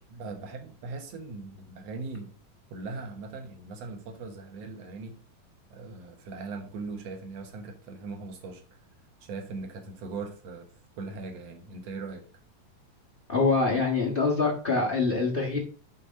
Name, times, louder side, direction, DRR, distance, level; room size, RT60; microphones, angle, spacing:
voice 1, 0.1-2.3 2.7-5.1 5.7-8.6 9.2-10.7 11.0-12.2, right 3 dB, 60° right, 2.1 m, -39 dB
voice 2, 13.3-15.6, left 3 dB, 85° left, 0.5 m, -25 dB
8.4 x 4.2 x 4.7 m
omnidirectional pair, 3.9 m